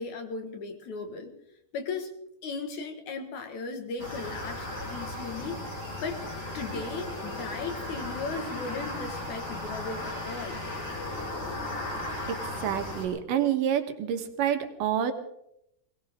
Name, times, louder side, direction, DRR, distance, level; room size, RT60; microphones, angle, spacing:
voice 1, 0.0-1.3 1.7-2.1 2.4-5.6 6.0-6.2 6.5-10.6, left 4 dB, 65° left, 5 dB, 2.9 m, -36 dB
sound 1, 4.0-13.1, left 1 dB, 30° left, 5.5 m, -36 dB
voice 2, 12.3-15.1, right 9 dB, 75° right, 7 dB, 2.8 m, -28 dB
21.5 x 18.5 x 3.6 m, 0.79 s
omnidirectional pair, 3.9 m